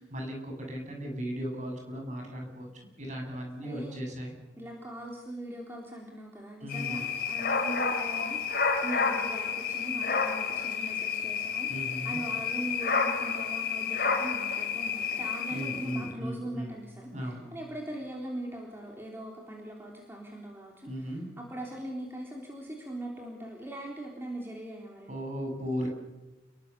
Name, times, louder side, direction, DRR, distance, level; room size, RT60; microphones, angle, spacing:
voice 1, 0.0-2.7 3.0-4.4 6.6-7.1 11.7-12.2 15.5-16.7 17.1-17.4 20.9-21.3 25.1-25.9, equal, 40° right, 2 dB, 7.3 m, -36 dB
voice 2, 3.6-4.0 4.6-8.4 8.8-25.1, right 1 dB, 10° right, -2 dB, 3.7 m, -41 dB
sound 1, 6.7-16.1, left 5 dB, 55° left, 3.7 m, -30 dB
29.5 x 22.5 x 7.1 m, 1.1 s
head